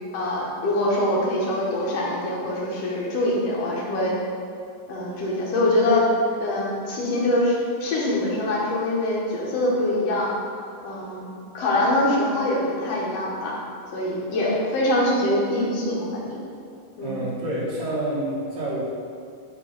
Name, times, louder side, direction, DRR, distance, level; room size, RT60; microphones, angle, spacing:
voice 1, 0.1-4.1 4.9-6.1 6.3-10.3 10.8-11.2 11.5-13.6 13.9-16.4 17.0-17.2, left 1 dB, 65° left, -4 dB, 1.9 m, -24 dB
voice 2, 17.0-18.8, right 1 dB, 50° right, -7 dB, 1.4 m, -28 dB
5.5 x 4.4 x 5.3 m, 2.3 s
omnidirectional pair, 3.7 m